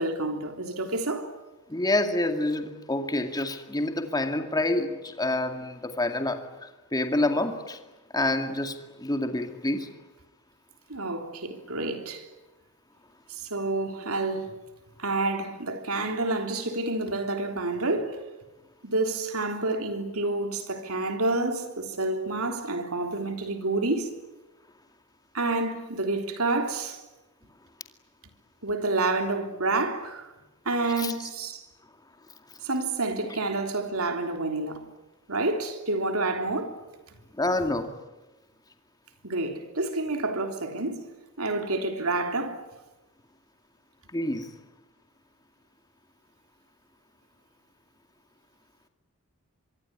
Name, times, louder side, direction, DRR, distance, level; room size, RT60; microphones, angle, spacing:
voice 1, 0.0-1.3 10.9-12.3 13.3-14.5 15.0-18.2 18.8-24.1 25.3-27.0 28.6-30.3 30.7-31.6 32.6-34.9 35.3-36.8 39.2-41.1 41.4-42.7, right 2 dB, 75° right, 3.5 m, -29 dB
voice 2, 1.7-7.8 8.1-9.9 31.0-31.1 37.4-37.9 44.1-44.5, left 2 dB, 20° left, 2.2 m, -27 dB
25.5 x 23.5 x 9.9 m
head